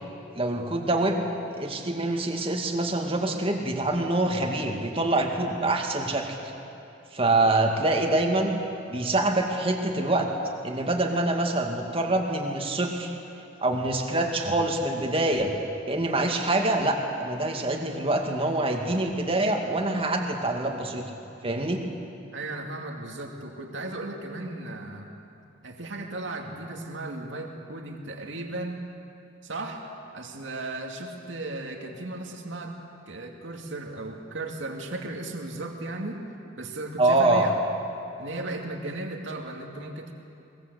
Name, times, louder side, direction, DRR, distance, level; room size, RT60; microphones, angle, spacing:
voice 1, 0.4-1.2 1.6-6.4 7.1-8.6 8.9-10.3 10.6-13.1 13.6-15.5 15.9-21.1 21.4-21.8 37.0-37.5, right 2 dB, 30° right, 2 dB, 2.2 m, -25 dB
voice 2, 22.3-25.1 25.6-28.9 29.4-29.9 30.1-32.8 33.1-36.2 36.6-37.6 38.2-40.1, right 2 dB, 75° right, 2 dB, 2.3 m, -36 dB
22.5 x 21.0 x 8.2 m, 2.7 s
head